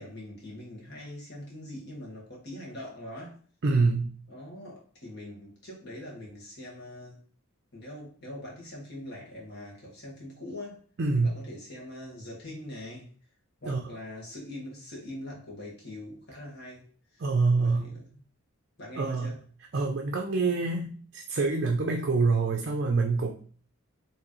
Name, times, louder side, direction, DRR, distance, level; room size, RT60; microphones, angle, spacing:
voice 1, 0.0-3.3 4.3-7.2 7.7-10.8 11.1-13.1 13.6-16.9 17.1-17.3 17.6-18.1 18.8-19.4, left 1 dB, 55° left, -3 dB, 1.6 m, -42 dB
voice 2, 3.6-4.2 11.0-11.3 13.6-13.8 17.2-17.9 19.0-19.3 19.7-23.3, right 3 dB, 55° right, 3 dB, 0.5 m, -26 dB
4.6 x 3.1 x 3.1 m, 0.43 s
head